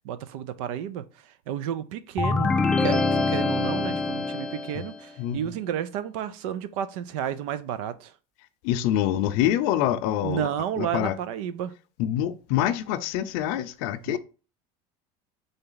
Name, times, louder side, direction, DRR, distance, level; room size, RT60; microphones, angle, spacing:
voice 1, 0.0-1.0 1.5-2.5 2.8-8.1 10.2-11.7 14.1-14.2, right 9 dB, 85° right, 0.5 m, -31 dB
sound 1, 2.2-5.0, left 3 dB, 5° left, 0.3 m, -24 dB
voice 2, 5.2-5.5 8.6-10.5 10.8-11.1 12.0-14.2, left 11 dB, 70° left, 0.5 m, -25 dB
4.0 x 3.3 x 3.9 m
cardioid pair, 140°, 17 cm